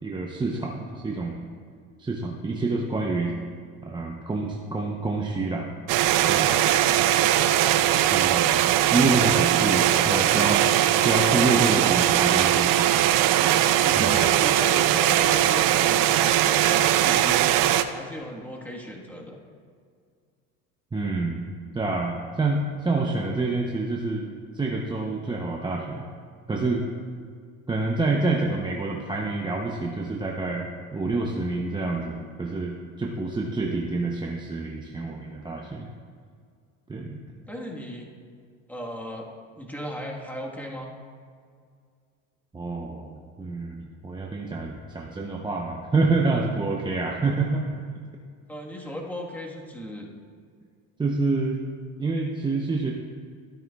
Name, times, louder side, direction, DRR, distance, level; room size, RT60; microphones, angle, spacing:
voice 1, 0.0-1.4 2.0-3.3 3.8-5.7 6.3-6.6 8.1-8.5 8.9-10.6 11.0-12.7 14.0-14.3 20.9-24.3 24.5-26.0 26.5-26.8 27.7-35.9 36.9-37.2 42.5-47.7 51.0-51.6 52.0-52.9, right 3 dB, 10° right, 0 dB, 0.6 m, -27 dB
sound 1, 5.9-17.8, right 12 dB, 55° right, 0.5 m, -20 dB
voice 2, 9.5-11.5 11.8-12.0 13.4-17.5 17.9-19.4 37.5-38.1 38.7-39.3 39.5-40.9 48.5-50.1, equal, 5° left, -1 dB, 1.3 m, -36 dB
12.5 x 8.8 x 2.3 m, 2.1 s
supercardioid pair, 95°, 39 cm